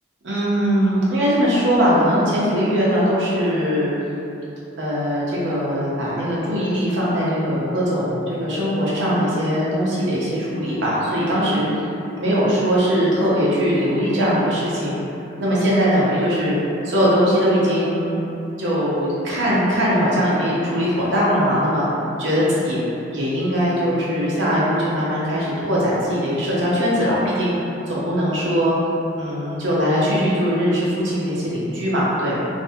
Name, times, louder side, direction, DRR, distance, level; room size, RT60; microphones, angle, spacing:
voice 1, 0.2-3.9 4.8-11.7 12.1-15.0 15.4-16.5 16.8-18.2 18.6-21.9 22.2-27.5 27.9-28.7 29.1-32.4, equal, 70° right, -8 dB, 0.7 m, -20 dB
2.5 x 2.1 x 2.7 m, 2.8 s
head